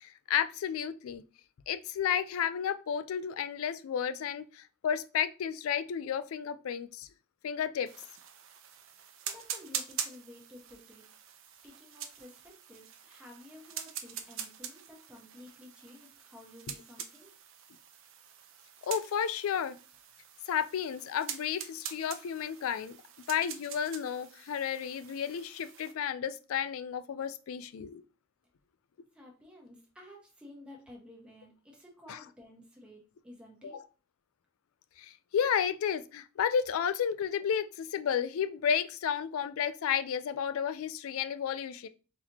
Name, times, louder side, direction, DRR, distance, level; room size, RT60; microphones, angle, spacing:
voice 1, 0.0-1.2 1.7-7.1 7.4-7.9 18.8-19.8 20.5-23.0 23.3-28.0 32.1-32.2 33.6-33.8 35.0-41.9, left 8 dB, 75° left, 0.3 m, -32 dB
sound 1, 7.9-25.9, right 9 dB, 65° right, 0.5 m, -44 dB
voice 2, 9.3-11.1 11.6-17.3 29.1-33.8, left 1 dB, 5° right, 1.0 m, -53 dB
4.0 x 2.9 x 2.9 m
head